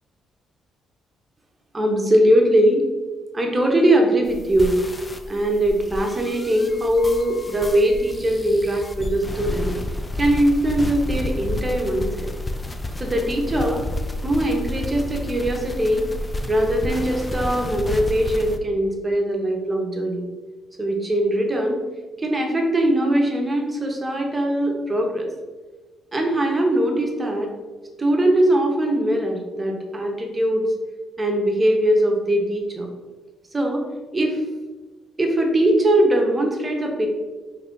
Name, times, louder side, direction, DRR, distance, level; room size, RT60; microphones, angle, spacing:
voice 1, 1.7-2.9 3.3-4.8 5.3-9.7 10.2-12.3 13.0-13.8 14.2-16.1 16.5-20.2 20.8-21.8 22.2-25.3 26.1-27.5 28.0-30.6 31.2-32.9 33.5-33.8 34.1-34.4 35.2-37.1, right 1 dB, 25° right, 1 dB, 0.7 m, -21 dB
sound 1, 4.2-18.6, left 1 dB, 20° left, 0.3 m, -30 dB
3.1 x 2.5 x 3.6 m, 1.2 s
cardioid pair, 90°, 0 cm